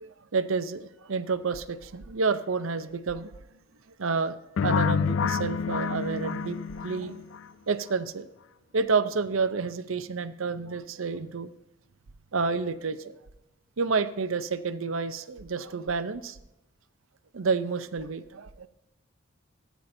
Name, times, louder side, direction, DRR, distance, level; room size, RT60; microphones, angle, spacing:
voice 1, 0.0-3.3 4.0-4.4 4.6-7.2 7.7-8.3 8.7-11.5 12.3-13.2 13.8-16.4 17.3-18.7, right 4 dB, 80° right, 13 dB, 0.6 m, -29 dB
sound 1, 4.6-7.4, left 6 dB, 70° left, 0.4 m, -28 dB
14.5 x 9.2 x 2.7 m, 0.93 s
head